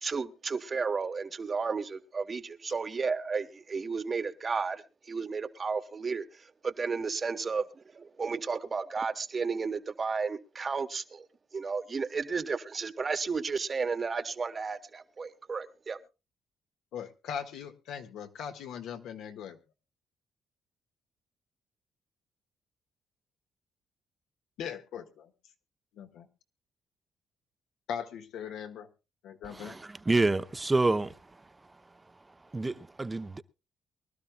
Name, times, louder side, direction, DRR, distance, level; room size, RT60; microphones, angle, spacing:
voice 1, 0.0-4.8 5.1-11.2 11.5-16.0, right 5 dB, 35° right, 1.1 m, -33 dB
voice 2, 16.9-19.6 24.6-25.3 25.9-26.3 27.9-28.9 29.2-29.8, left 8 dB, 85° left, 1.6 m, -40 dB
voice 3, 29.5-31.2 32.5-33.4, right 2 dB, 20° right, 0.7 m, -28 dB
24.0 x 12.0 x 2.3 m
cardioid pair, 90°, 0 cm